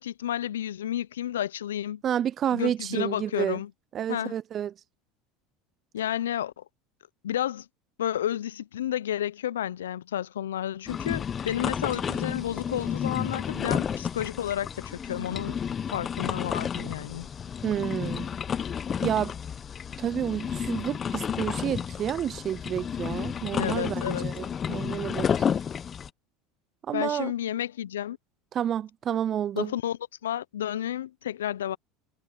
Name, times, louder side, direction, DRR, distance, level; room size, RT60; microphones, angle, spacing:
voice 1, 0.0-2.0 2.5-3.7 4.1-4.3 5.9-6.6 7.2-7.7 8.0-15.6 15.9-17.3 23.6-24.3 26.9-28.2 29.5-31.8, left 11 dB, 90° left, 0.4 m, -31 dB
voice 2, 2.0-3.6 3.9-4.7 17.6-18.3 19.0-19.3 20.0-25.3 26.9-27.3 28.5-29.7, right 10 dB, 45° right, 0.3 m, -30 dB
sound 1, 10.9-26.1, left 7 dB, 35° left, 0.7 m, -31 dB
hypercardioid pair, 85°, 0 cm